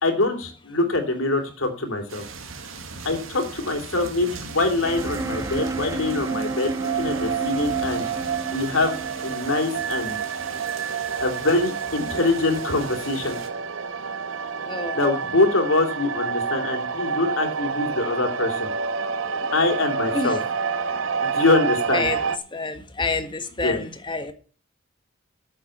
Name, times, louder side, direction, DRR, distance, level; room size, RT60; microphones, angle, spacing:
voice 1, 0.0-2.2 3.0-8.1 8.5-10.2 11.2-13.4 14.9-18.7 19.5-20.4 21.2-22.1 23.6-23.8, left 2 dB, 90° left, 5 dB, 3.0 m, -24 dB
sound 1, 2.1-13.5, right 4 dB, 85° right, 1.8 m, -39 dB
sound 2, 4.3-22.4, right 6 dB, 70° right, 0.7 m, -29 dB
sound 3, 4.8-10.7, right 3 dB, 15° right, 0.5 m, -32 dB
voice 2, 14.6-15.2 19.3-19.6 20.1-20.4 21.9-22.2 22.5-24.3, left 3 dB, 25° left, 9 dB, 1.3 m, -28 dB
8.9 x 7.5 x 8.4 m, 0.40 s
head